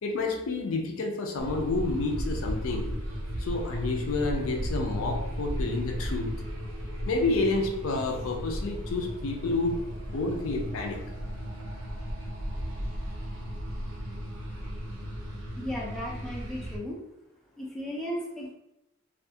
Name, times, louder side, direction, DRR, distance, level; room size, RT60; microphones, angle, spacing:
voice 1, 0.0-3.0 3.4-6.4 7.1-9.9 10.1-11.0, left 3 dB, 75° left, 3 dB, 0.4 m, -29 dB
sound 1, 1.4-16.8, equal, 65° right, 0.5 m, -35 dB
voice 2, 15.6-17.0 17.5-18.5, equal, ahead, -4 dB, 0.3 m, -35 dB
2.4 x 2.2 x 2.7 m, 0.86 s
head